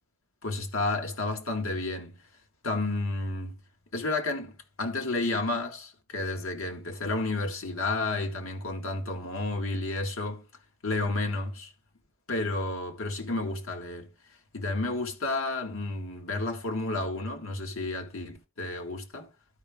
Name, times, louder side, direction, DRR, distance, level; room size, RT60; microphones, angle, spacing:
voice 1, 0.4-2.2 2.6-3.6 3.9-10.4 10.8-11.7 12.3-14.1 14.5-19.3, left 2 dB, 85° left, 1.9 m, -31 dB
12.5 x 4.9 x 3.5 m
head